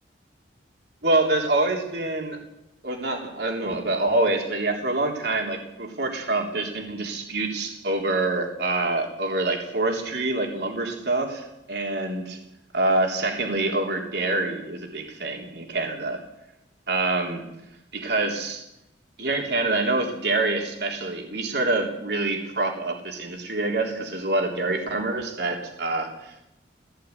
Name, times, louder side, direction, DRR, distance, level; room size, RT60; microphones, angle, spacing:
voice 1, 1.0-2.4 2.8-12.4 12.7-16.2 16.9-17.4 17.9-18.6 19.2-26.4, right 2 dB, 65° right, 1 dB, 3.6 m, -26 dB
17.0 x 16.5 x 9.5 m, 0.87 s
head